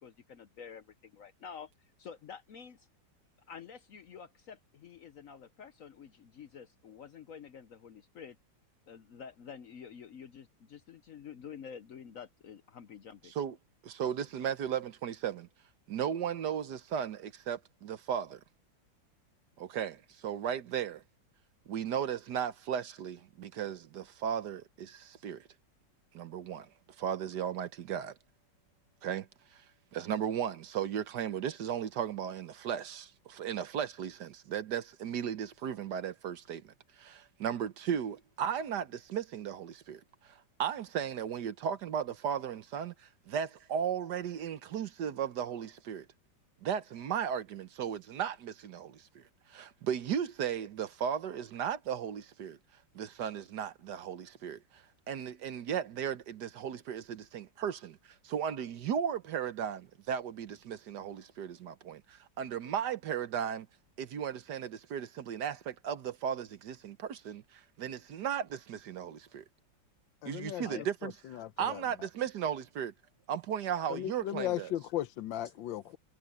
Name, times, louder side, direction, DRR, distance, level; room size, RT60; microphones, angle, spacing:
voice 1, 0.0-1.7 2.0-2.9 3.5-8.4 8.9-13.3 14.2-14.3 70.6-70.9 75.4-75.5, left 7 dB, 60° left, 0.9 m, -49 dB
voice 2, 13.8-15.5 15.9-18.4 19.6-21.0 21.7-25.4 26.1-26.7 27.0-28.1 29.0-29.3 29.5-29.6 29.9-46.1 46.6-49.2 49.5-52.6 52.9-58.0 58.2-63.7 64.0-69.4 70.3-72.9 73.3-74.7, right 8 dB, 65° right, 1.5 m, -36 dB
voice 3, 70.2-72.1 73.9-76.0, left 12 dB, 80° left, 1.5 m, -37 dB
omnidirectional pair, 2.1 m